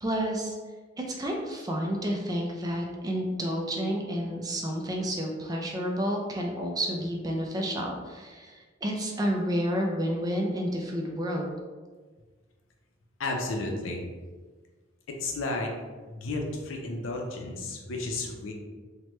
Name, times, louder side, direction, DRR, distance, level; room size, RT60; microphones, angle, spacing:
voice 1, 0.0-0.6 1.0-11.5, equal, 20° right, 1 dB, 0.3 m, -30 dB
voice 2, 13.2-14.0 15.1-15.7 16.1-18.5, left 2 dB, 75° left, 2 dB, 0.5 m, -32 dB
3.0 x 2.1 x 3.0 m, 1.4 s
head